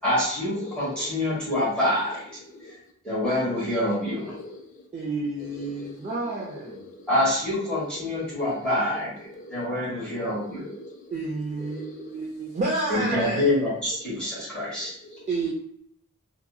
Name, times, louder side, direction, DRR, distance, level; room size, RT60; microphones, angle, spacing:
voice 1, 0.0-2.3 3.0-4.2 7.1-9.1 9.5-10.6 12.9-14.9, left 1 dB, 5° left, 1.1 m, -26 dB
voice 2, 0.6-1.4 2.5-2.7 3.6-4.8 5.4-6.1 6.6-7.1 7.9-8.7 9.3-9.7 10.1-11.1 11.6-12.2 14.6-15.3, left 2 dB, 35° left, 0.4 m, -43 dB
voice 3, 4.9-6.8 11.1-13.5 15.3-15.5, right 2 dB, 35° right, 0.4 m, -30 dB
2.8 x 2.6 x 2.3 m
head